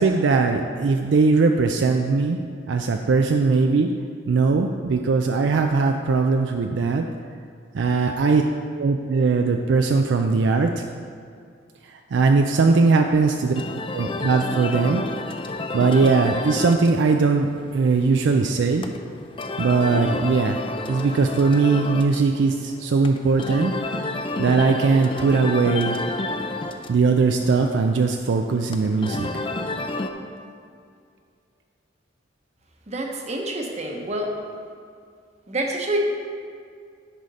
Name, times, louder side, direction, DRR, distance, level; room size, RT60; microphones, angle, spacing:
voice 1, 0.0-2.4 2.7-3.9 4.3-7.1 7.7-8.4 8.8-10.8 11.9-13.6 13.9-15.0 15.7-18.9 19.6-20.6 20.9-23.8 24.4-26.0 26.9-29.4, right 4 dB, 70° right, 4 dB, 0.4 m, -20 dB
sound 1, 13.5-30.1, left 2 dB, 30° left, 0.4 m, -31 dB
voice 2, 32.9-34.3 35.5-36.0, right 1 dB, 35° right, 1 dB, 1.0 m, -27 dB
10.0 x 5.0 x 4.1 m, 2.3 s
head